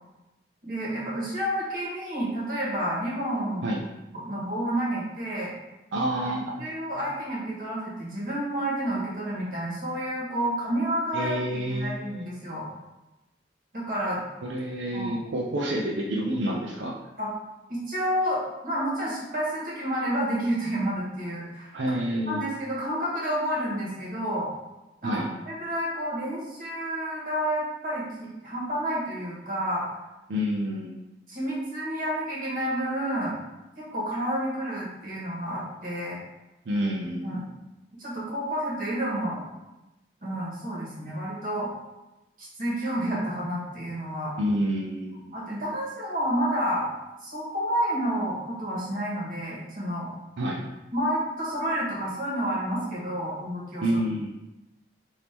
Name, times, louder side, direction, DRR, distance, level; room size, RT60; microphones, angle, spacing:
voice 1, 0.6-3.7 4.1-5.5 6.2-12.7 13.7-14.2 14.9-15.1 17.2-17.3 17.7-21.7 22.3-24.5 25.0-29.8 31.3-33.4 33.8-36.2 37.2-37.5 38.0-39.4 40.2-41.7 42.4-44.3 45.3-46.8 47.2-50.1 50.9-53.9, right 1 dB, 50° right, -6 dB, 1.4 m, -30 dB
voice 2, 5.9-6.7 11.1-12.3 14.4-17.0 21.7-22.4 25.0-25.3 30.3-31.0 36.7-37.4 44.4-45.2 50.4-50.7 53.8-54.3, equal, 90° right, -2 dB, 0.5 m, -28 dB
3.5 x 2.7 x 4.4 m, 0.99 s
head